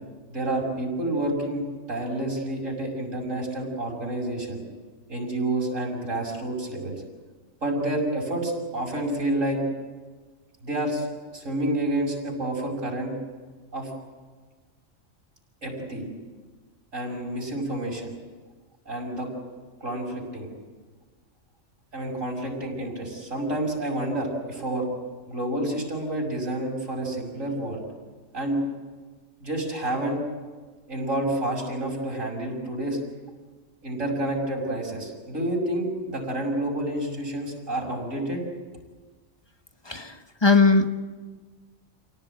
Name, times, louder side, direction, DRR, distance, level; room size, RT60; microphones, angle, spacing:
voice 1, 0.3-1.6 1.9-4.6 5.1-7.0 7.6-9.6 10.6-11.1 11.3-13.1 13.7-13.9 15.6-16.0 16.9-18.1 18.9-19.3 19.8-20.5 21.9-24.9 25.3-27.8 28.3-28.6 29.4-30.2 30.9-33.0 33.8-38.4, right 1 dB, 85° right, -1 dB, 6.3 m, -29 dB
voice 2, 39.9-40.9, left 4 dB, 20° left, 7 dB, 1.2 m, -19 dB
28.5 x 18.0 x 8.9 m, 1.4 s
omnidirectional pair, 1.3 m